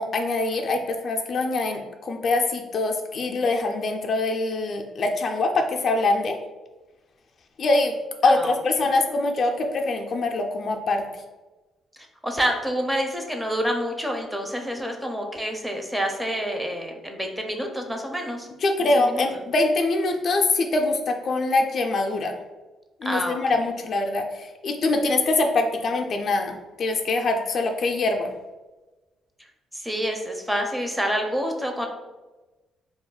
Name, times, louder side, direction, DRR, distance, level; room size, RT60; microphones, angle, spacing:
voice 1, 0.0-6.4 7.6-7.9 8.2-11.0 18.6-22.3 23.0-28.3, left 2 dB, 55° left, 4 dB, 0.3 m, -24 dB
voice 2, 8.2-8.5 12.2-18.5 18.8-19.2 23.0-23.6 29.7-31.9, equal, 10° right, 3 dB, 0.5 m, -28 dB
2.4 x 2.1 x 3.7 m, 1.2 s
cardioid pair, 90°, 0 cm